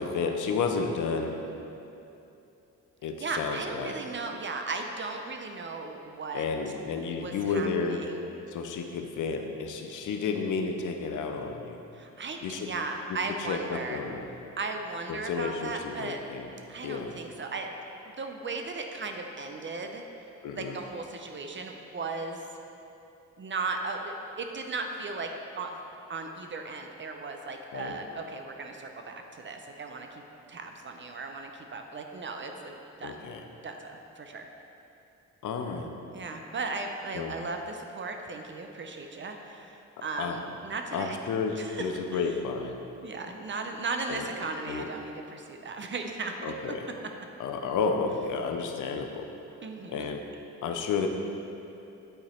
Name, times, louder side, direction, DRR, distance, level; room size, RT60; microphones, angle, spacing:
voice 1, 0.0-1.4 3.0-4.0 6.3-8.0 8.5-11.8 12.4-12.7 13.1-14.3 15.1-16.5 16.8-17.2 20.4-20.8 27.7-28.0 33.0-33.4 35.4-35.9 37.1-37.3 40.2-40.4 40.9-42.8 44.1-44.3 44.7-44.9 46.4-46.9 47.4-49.3 49.9-50.3 50.6-51.1, left 5 dB, 75° left, 5 dB, 0.6 m, -31 dB
voice 2, 3.2-6.5 7.2-8.2 11.9-14.0 14.6-16.2 16.7-17.7 18.0-20.0 20.5-22.4 23.4-25.3 25.6-25.8 26.1-30.2 30.5-33.2 33.6-34.5 36.1-41.2 41.6-42.2 43.0-46.5 49.6-50.1, right 3 dB, 40° right, 4 dB, 0.5 m, -36 dB
8.8 x 2.9 x 4.3 m, 2.8 s
cardioid pair, 75°, 31 cm